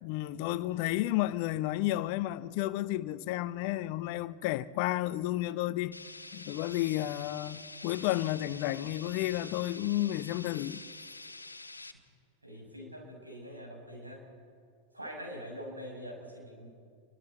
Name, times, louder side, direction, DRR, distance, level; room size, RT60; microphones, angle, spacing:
voice 1, 0.0-6.0 6.3-10.8, left 15 dB, 45° left, 0.7 m, -32 dB
sound 1, 5.9-11.9, left 2 dB, 80° left, 1.2 m, -47 dB
voice 2, 12.4-14.3 14.9-16.8, equal, 80° right, 6.9 m, -44 dB
29.0 x 24.0 x 4.2 m
figure-of-eight pair, 90°, 0 cm